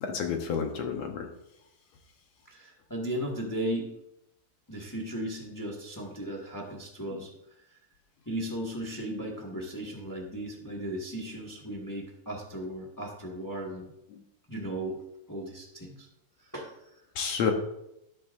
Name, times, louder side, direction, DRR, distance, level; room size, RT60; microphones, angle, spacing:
voice 1, 0.0-1.3 7.1-7.2 14.1-14.2 17.2-17.5, left 6 dB, 65° left, 3 dB, 2.0 m, -30 dB
voice 2, 2.4-3.9 4.7-7.3 8.2-13.9 14.5-15.0 15.3-16.1 16.4-16.7, right 1 dB, 20° left, -2 dB, 0.5 m, -36 dB
12.0 x 12.0 x 2.7 m, 0.83 s
omnidirectional pair, 3.8 m